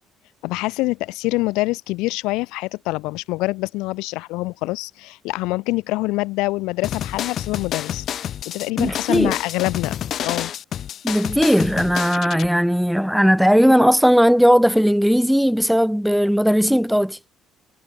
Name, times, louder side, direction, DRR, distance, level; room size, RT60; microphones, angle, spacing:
voice 1, 0.4-8.0 8.4-10.5, left 21 dB, 85° left, 7.9 m, -25 dB
sound 1, 6.8-12.5, left 10 dB, 55° left, 2.3 m, -29 dB
voice 2, 8.8-9.4 11.0-17.2, equal, ahead, 1.4 m, -17 dB
supercardioid pair, 90°, 0 cm